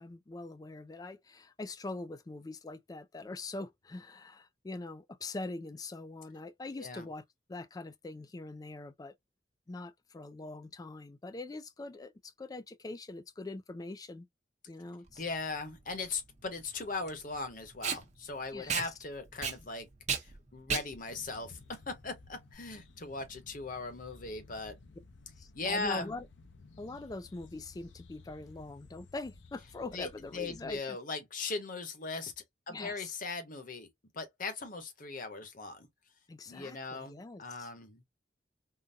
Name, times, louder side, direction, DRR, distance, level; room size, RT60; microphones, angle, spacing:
voice 1, 0.0-7.2 7.5-9.1 9.7-14.3 14.7-15.2 18.5-18.8 25.4-26.3 26.8-31.0 32.7-33.1 36.3-37.7, left 2 dB, 20° left, 0.3 m, -43 dB
voice 2, 6.8-7.1 15.2-24.7 25.5-26.1 29.9-32.3 32.7-33.9 34.1-35.9 36.5-38.0, left 3 dB, 50° left, 1.0 m, -39 dB
Packing tape duct tape, 15.1-22.5, right 6 dB, 40° right, 0.8 m, -37 dB
sound 1, 21.1-30.8, left 3 dB, 90° left, 0.7 m, -56 dB
3.8 x 2.2 x 2.6 m
head